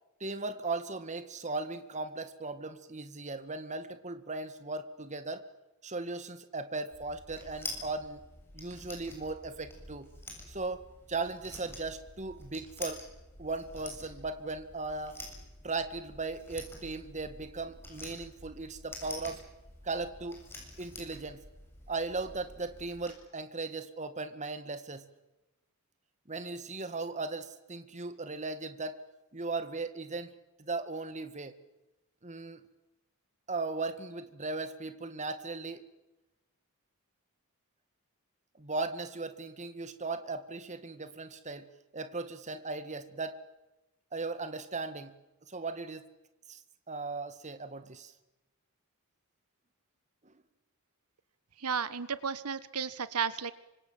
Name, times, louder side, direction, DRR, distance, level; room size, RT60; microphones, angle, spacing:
voice 1, 0.2-5.4 5.8-8.2 8.5-10.1 10.5-13.0 13.4-15.2 15.6-19.4 19.8-20.4 20.8-21.4 21.9-25.0 26.3-29.0 29.3-30.3 30.6-31.5 32.2-32.6 33.5-35.8 38.6-41.7 41.9-43.4 44.1-45.1 45.5-46.0 46.5-46.6 46.9-48.1 50.3-50.4, right 3 dB, 30° right, 10 dB, 1.9 m, -37 dB
sound 1, 6.9-23.1, left 2 dB, 10° left, 7.7 m, -48 dB
voice 2, 51.6-53.5, right 6 dB, 85° right, 15 dB, 1.3 m, -33 dB
27.5 x 25.5 x 7.6 m, 0.99 s
head